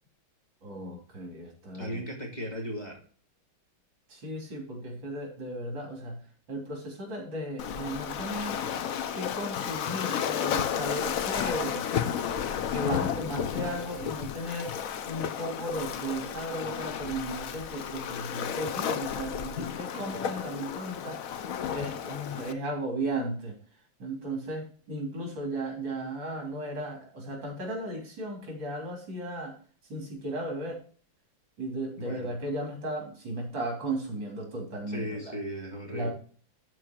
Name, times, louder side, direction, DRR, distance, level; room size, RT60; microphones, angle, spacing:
voice 1, 0.6-2.0 4.1-8.6 9.1-11.8 12.7-14.7 15.1-23.5 24.0-29.6 29.9-30.8 31.6-35.3 35.9-36.1, right 1 dB, 60° right, 1 dB, 3.9 m, -35 dB
voice 2, 1.7-3.0 32.0-32.4 34.9-36.1, equal, 20° left, -1 dB, 2.2 m, -36 dB
Waves surf, 7.6-22.5, left 8 dB, 80° left, 0.7 m, -32 dB
12.5 x 4.6 x 4.5 m, 0.43 s
omnidirectional pair, 2.4 m